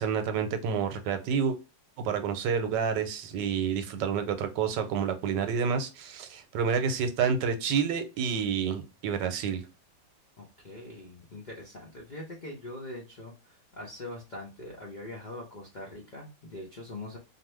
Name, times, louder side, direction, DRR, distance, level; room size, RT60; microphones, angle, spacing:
voice 1, 0.0-1.6 2.0-9.6, right 6 dB, 85° right, 1.2 m, -29 dB
voice 2, 10.4-17.2, left 1 dB, 65° left, 0.4 m, -42 dB
2.6 x 2.5 x 3.1 m
omnidirectional pair, 1.9 m